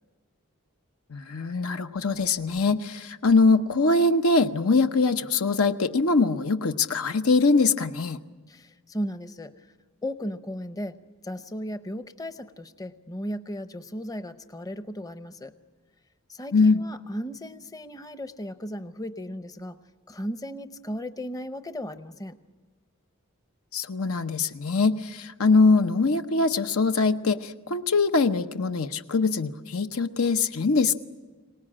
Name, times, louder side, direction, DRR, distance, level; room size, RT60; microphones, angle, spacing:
voice 1, 1.1-8.2 16.5-16.8 23.7-31.0, left 3 dB, 75° left, 8 dB, 0.9 m, -22 dB
voice 2, 8.5-9.5 10.0-11.0 11.2-15.5 16.3-19.8 20.1-22.4, equal, 15° left, 11 dB, 0.7 m, -36 dB
24.5 x 19.0 x 8.7 m, 1.3 s
head